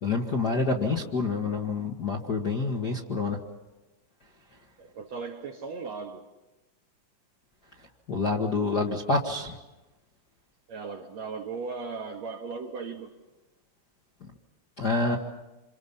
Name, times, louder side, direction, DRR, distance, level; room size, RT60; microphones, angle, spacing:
voice 1, 0.0-3.4 8.1-9.6 14.8-15.2, left 3 dB, 45° left, 1.3 m, -27 dB
voice 2, 4.8-6.3 10.7-13.1, right 4 dB, 60° right, 1.9 m, -37 dB
28.0 x 27.5 x 5.6 m
omnidirectional pair, 4.4 m